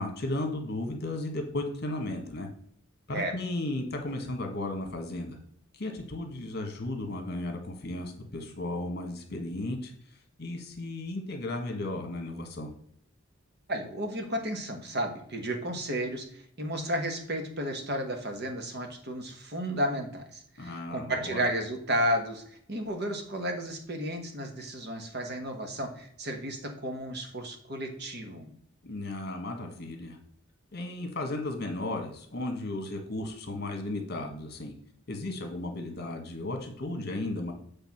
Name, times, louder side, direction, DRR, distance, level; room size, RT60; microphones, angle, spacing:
voice 1, 0.0-2.5 3.1-5.4 5.7-9.9 10.4-12.7 20.6-21.4 28.8-30.2 30.7-34.7 35.1-37.5, left 2 dB, 45° left, 4 dB, 1.4 m, -35 dB
voice 2, 13.7-28.5, right 1 dB, 50° right, 4 dB, 1.2 m, -33 dB
8.3 x 3.5 x 5.9 m, 0.65 s
head